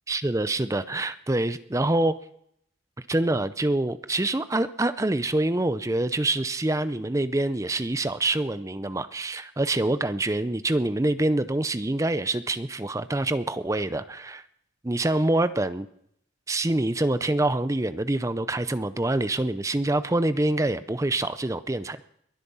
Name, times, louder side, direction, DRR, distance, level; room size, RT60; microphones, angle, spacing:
voice 1, 0.1-2.2 3.1-14.4 14.8-15.9 16.5-22.0, right 2 dB, 15° right, 13 dB, 0.5 m, -26 dB
22.0 x 8.3 x 5.5 m, 0.72 s
head